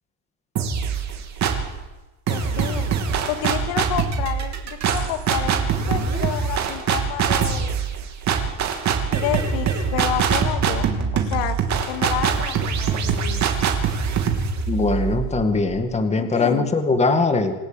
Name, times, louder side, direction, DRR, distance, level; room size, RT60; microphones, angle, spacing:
sound 1, 0.6-1.8 2.3-16.0, right 6 dB, 40° right, 3.3 m, -23 dB
voice 1, 2.3-2.9 3.3-7.8 9.1-11.6 11.9-13.5 16.2-16.7, left 11 dB, 75° left, 8 dB, 2.3 m, -30 dB
voice 2, 14.7-17.5, left 3 dB, 15° left, 7 dB, 2.1 m, -21 dB
27.5 x 16.5 x 9.1 m, 1.1 s
cardioid pair, 160°, 43 cm